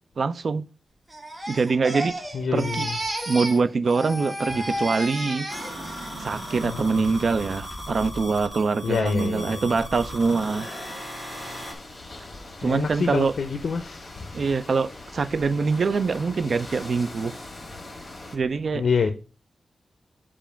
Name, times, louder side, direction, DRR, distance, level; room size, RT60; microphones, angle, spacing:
voice 1, 0.2-0.6 1.5-2.2 2.5-2.9 3.3-5.5 6.2-10.7 12.6-13.3 14.3-17.3 18.3-18.8, right 4 dB, 55° right, 0.3 m, -24 dB
Crying sobbing, 1.1-3.6 3.9-6.1 6.5-6.9, right 1 dB, 20° right, 0.9 m, -32 dB
voice 2, 2.3-3.0 4.5-4.9 6.6-7.1 8.8-9.7 12.6-14.3 18.7-19.1, left 5 dB, 65° left, 0.5 m, -27 dB
sound 1, 5.5-11.7, equal, 5° right, 1.3 m, -37 dB
sound 2, 11.3-18.4, left 2 dB, 30° left, 1.5 m, -42 dB
7.0 x 2.4 x 5.6 m
wide cardioid pair, 175°, 0 cm